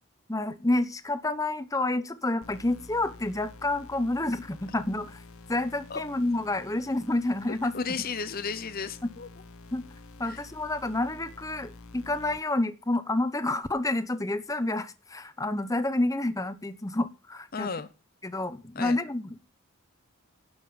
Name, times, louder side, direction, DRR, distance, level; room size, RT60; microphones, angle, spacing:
voice 1, 0.3-5.2 5.5-7.7 9.0-9.1 9.7-9.8 10.2-17.7 18.2-19.4, left 2 dB, 15° left, 12 dB, 0.8 m, -29 dB
sound 1, 2.4-12.4, left 3 dB, 75° left, 1.1 m, -49 dB
voice 2, 7.7-9.3 10.2-10.4 17.5-17.9 18.7-19.0, left 5 dB, 45° left, 11 dB, 0.8 m, -33 dB
11.5 x 5.6 x 7.0 m, 0.32 s
head